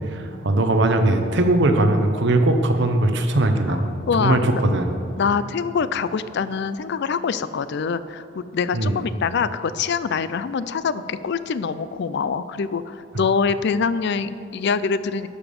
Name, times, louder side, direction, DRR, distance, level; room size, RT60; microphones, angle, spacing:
voice 1, 0.1-3.8 4.1-4.9 8.7-9.0, right 2 dB, 60° right, 6 dB, 0.9 m, -19 dB
voice 2, 4.1-4.6 5.2-8.2 8.5-15.3, left 5 dB, 60° left, 14 dB, 0.4 m, -24 dB
12.0 x 7.0 x 5.3 m, 2.8 s
head